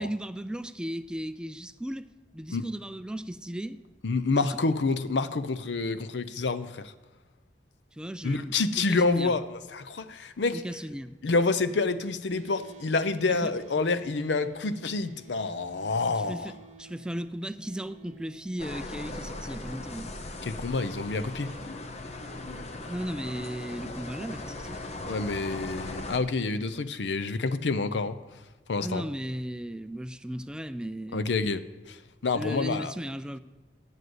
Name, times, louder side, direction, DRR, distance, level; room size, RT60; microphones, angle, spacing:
voice 1, 0.0-3.8 4.4-4.5 7.9-9.3 10.5-11.2 13.3-13.5 16.2-20.2 22.9-24.8 28.8-31.2 32.3-33.4, equal, 5° right, 0.3 m, -36 dB
voice 2, 4.0-6.9 8.2-9.5 9.7-10.6 11.2-16.5 20.4-21.5 25.1-28.2 28.7-29.0 31.1-32.0 32.2-32.9, left 3 dB, 80° left, 0.6 m, -28 dB
sound 1, 12.3-22.6, right 3 dB, 40° right, 0.8 m, -52 dB
sound 2, 18.6-26.2, left 2 dB, 40° left, 0.9 m, -39 dB
9.3 x 7.7 x 7.9 m
head